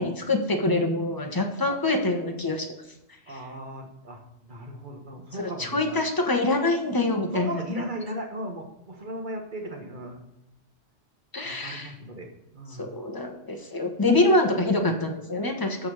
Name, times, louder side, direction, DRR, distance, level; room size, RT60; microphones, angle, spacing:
voice 1, 0.0-2.7 3.3-3.4 5.3-7.8 11.3-11.9 12.8-15.9, left 2 dB, 15° left, 3 dB, 1.1 m, -25 dB
voice 2, 3.3-6.0 7.3-10.2 11.4-12.9, right 1 dB, 40° right, 3 dB, 1.5 m, -37 dB
13.5 x 4.5 x 4.8 m, 0.87 s
omnidirectional pair, 1.4 m